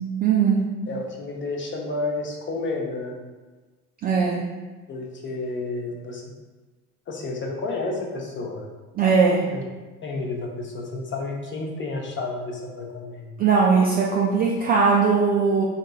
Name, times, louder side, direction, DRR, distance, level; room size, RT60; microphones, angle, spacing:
voice 1, 0.2-0.6 4.0-4.4 8.9-9.4 13.4-15.6, right 5 dB, 25° right, -3 dB, 0.3 m, -19 dB
voice 2, 0.9-3.2 4.9-6.2 7.1-8.6 9.5-9.6 10.0-13.3, left 3 dB, 25° left, 0 dB, 0.7 m, -31 dB
4.0 x 3.6 x 2.3 m, 1.3 s
figure-of-eight pair, 70°, 45 cm